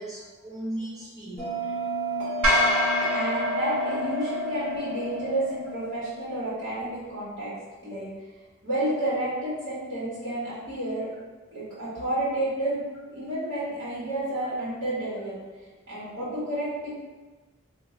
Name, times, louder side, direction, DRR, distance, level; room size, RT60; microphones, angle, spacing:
voice 1, 0.0-1.8 2.4-3.3 11.5-11.6, right 1 dB, 15° right, -7 dB, 0.7 m, -39 dB
Bell, 1.4-6.5, equal, 35° right, 1.0 m, -31 dB
sound 1, 2.4-4.8, equal, 85° right, 0.8 m, -26 dB
voice 2, 3.1-7.5 7.8-8.1 8.6-11.1 11.5-12.8 13.1-15.4 15.9-16.9, right 1 dB, 60° right, -11 dB, 1.4 m, -30 dB
2.9 x 2.5 x 3.7 m, 1.3 s
head